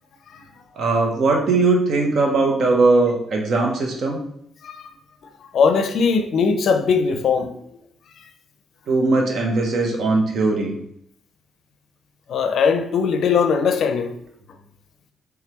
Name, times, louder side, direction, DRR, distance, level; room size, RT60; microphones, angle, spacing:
voice 1, 0.8-4.2 8.9-10.7, right 3 dB, 65° right, 0.8 m, -19 dB
voice 2, 4.6-4.9 5.5-7.5 12.3-14.2, left 5 dB, 65° left, 0.4 m, -20 dB
3.5 x 3.3 x 3.0 m
cardioid pair, 90°, 0 cm